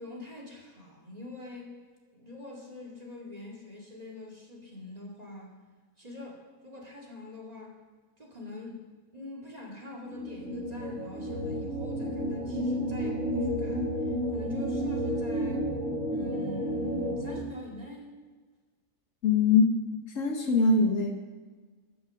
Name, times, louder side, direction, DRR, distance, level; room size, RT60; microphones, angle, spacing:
voice 1, 0.0-1.8 2.1-5.6 6.0-7.8 8.2-8.9 9.1-15.7 16.1-18.2, left 2 dB, 25° right, -2 dB, 2.3 m, -44 dB
sound 1, 10.1-17.4, equal, 55° right, 2.1 m, -31 dB
voice 2, 19.2-21.2, left 4 dB, 65° left, 3 dB, 1.5 m, -23 dB
14.5 x 6.1 x 6.1 m, 1.5 s
omnidirectional pair, 1.5 m